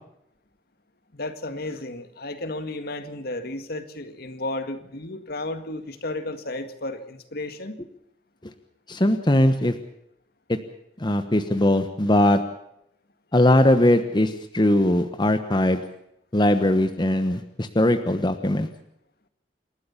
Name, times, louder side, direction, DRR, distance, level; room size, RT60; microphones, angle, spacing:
voice 1, 1.1-7.8, left 2 dB, 60° left, 9 dB, 1.9 m, -33 dB
voice 2, 8.9-9.7 10.5-10.6 11.0-12.4 13.3-15.8 16.3-18.7, left 1 dB, 25° left, 8 dB, 1.2 m, -20 dB
28.5 x 13.0 x 7.1 m, 0.78 s
head